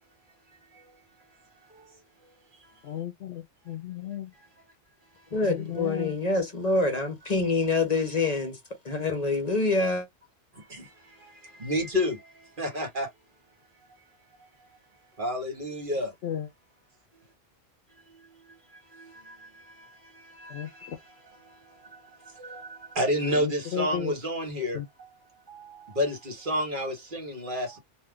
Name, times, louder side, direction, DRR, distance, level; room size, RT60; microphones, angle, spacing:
voice 1, 2.8-4.3 5.4-6.1 16.2-16.5 20.5-21.0 23.4-24.1 24.7-24.9, left 10 dB, 65° left, 0.7 m, -34 dB
voice 2, 5.3-8.6 8.8-10.1, left 3 dB, 40° left, 0.9 m, -26 dB
voice 3, 11.6-12.2 12.6-13.1 15.2-16.1 23.0-24.8 26.0-26.1 26.5-27.8, equal, 45° right, 1.3 m, -28 dB
2.7 x 2.3 x 3.5 m
omnidirectional pair, 1.2 m